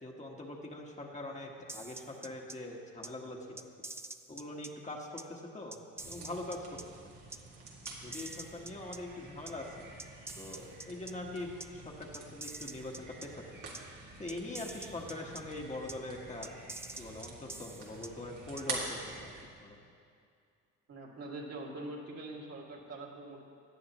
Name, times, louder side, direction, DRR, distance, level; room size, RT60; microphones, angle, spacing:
voice 1, 0.0-3.6 4.3-5.8 6.0-6.8 7.0-7.1 8.0-9.9 10.4-13.4 14.2-16.5 17.0-19.3 19.6-19.8, left 2 dB, 25° left, -1 dB, 1.3 m, -43 dB
sound 1, 1.7-2.5 3.0-3.1 3.6-4.7 5.2-5.3 5.7-6.8 7.3-7.4 7.8-9.0 9.5-9.6 10.0-11.1 11.6-11.7 12.1-13.3 13.7-13.8 14.3-15.4 15.9-16.0 16.4-18.1 18.6-18.7, right 2 dB, 10° right, 0.4 m, -45 dB
sound 2, 6.0-19.4, right 3 dB, 85° right, 2.1 m, -47 dB
voice 2, 20.9-23.4, right 2 dB, 55° right, -1 dB, 2.2 m, -43 dB
17.0 x 10.0 x 3.0 m, 2.3 s
cardioid pair, 90°, 30 cm